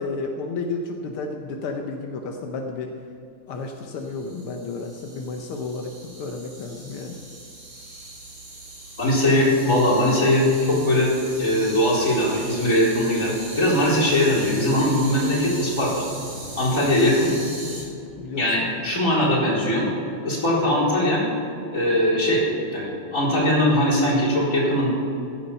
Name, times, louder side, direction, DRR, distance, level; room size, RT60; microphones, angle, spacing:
voice 1, 0.0-2.9 3.5-7.1 17.6-18.5, left 3 dB, 85° left, 3 dB, 1.9 m, -32 dB
sound 1, 3.9-17.8, right 2 dB, 75° right, 4.7 m, -39 dB
voice 2, 9.0-11.1 11.4-16.0 16.6-17.3 18.3-21.3 21.7-22.4 22.7-24.9, left 1 dB, 35° left, -6 dB, 4.5 m, -20 dB
15.5 x 11.0 x 5.6 m, 2.6 s
omnidirectional pair, 2.3 m